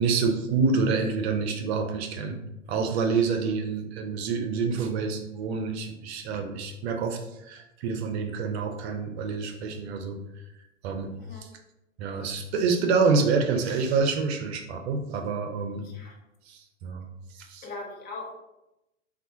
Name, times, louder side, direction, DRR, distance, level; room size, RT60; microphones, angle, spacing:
voice 1, 0.0-2.4 2.7-10.2 10.8-11.1 12.0-15.9 16.5-17.1 17.3-17.6, right 4 dB, 55° right, 4 dB, 0.6 m, -27 dB
voice 2, 11.1-11.4 15.8-16.2 17.6-18.4, left 3 dB, 25° left, 1 dB, 0.6 m, -40 dB
3.5 x 2.4 x 2.7 m, 0.90 s
hypercardioid pair, 110°, 39 cm